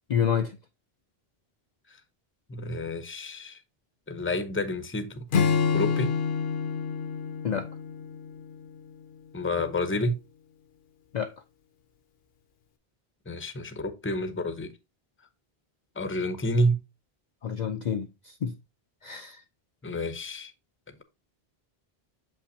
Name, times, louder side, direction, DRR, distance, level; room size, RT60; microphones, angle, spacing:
voice 1, 0.1-0.6 7.4-7.7 11.1-11.4 17.4-18.5 19.0-19.4, left 7 dB, 50° left, 0.6 m, -28 dB
voice 2, 2.5-3.6 4.1-5.2 5.7-6.1 9.3-10.2 13.3-14.7 16.0-16.8 19.8-20.5, left 1 dB, 15° left, 0.6 m, -29 dB
Acoustic guitar / Strum, 5.3-8.8, left 6 dB, 70° left, 1.0 m, -27 dB
7.3 x 5.5 x 2.7 m
omnidirectional pair, 1.1 m